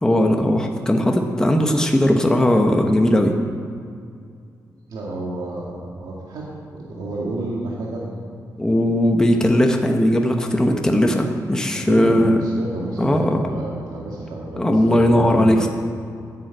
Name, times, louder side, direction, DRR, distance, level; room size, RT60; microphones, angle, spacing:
voice 1, 0.0-3.3 8.6-12.4 13.0-13.4 14.6-15.7, left 1 dB, 10° left, 2 dB, 1.0 m, -18 dB
voice 2, 4.9-8.2 11.7-15.7, right 2 dB, 85° right, -3 dB, 2.1 m, -30 dB
10.5 x 9.5 x 8.1 m, 2.3 s
wide cardioid pair, 135°, 7 cm